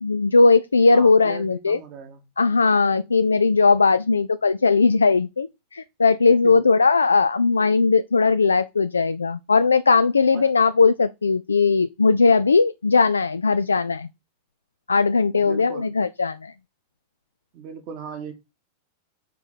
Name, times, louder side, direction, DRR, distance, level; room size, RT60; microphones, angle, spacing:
voice 1, 0.0-1.8 2.4-5.5 5.7-14.1 14.9-16.5, left 4 dB, 75° left, 0.3 m, -18 dB
voice 2, 0.9-2.3 6.4-6.7 10.3-10.6 15.3-16.0 17.5-18.3, right 6 dB, 40° right, 1.6 m, -38 dB
6.8 x 4.8 x 4.1 m
figure-of-eight pair, 90°, 0 cm